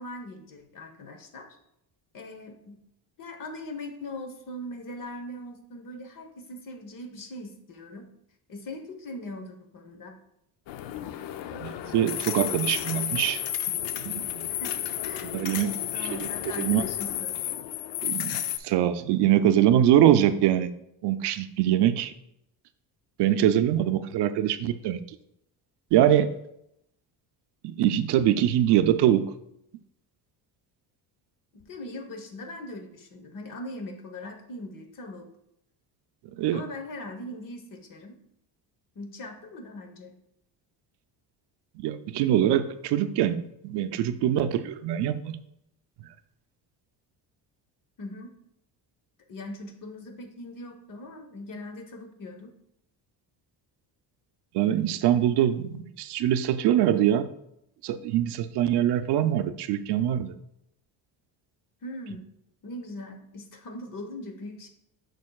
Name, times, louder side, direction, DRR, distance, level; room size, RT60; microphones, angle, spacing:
voice 1, 0.0-1.6 2.1-2.8 3.2-8.1 8.5-10.1 12.0-12.1 14.5-14.8 15.0-17.3 31.5-35.3 36.5-38.2 38.9-40.2 48.0-48.3 49.3-52.5 61.8-62.3 62.6-64.7, left 1 dB, 50° left, 6 dB, 1.1 m, -40 dB
sound 1, 10.7-18.6, left 11 dB, 70° left, 0.6 m, -32 dB
voice 2, 11.6-13.4 14.0-14.5 15.3-15.7 16.2-16.3 16.6-16.8 18.0-20.7 21.0-22.1 23.2-25.0 25.9-26.3 27.6-29.3 36.4-36.6 41.8-45.4 46.0-46.1 54.5-57.3 57.8-60.3, right 11 dB, 65° right, 10 dB, 0.5 m, -23 dB
6.5 x 6.4 x 2.3 m, 0.79 s
cardioid pair, 105°, 43 cm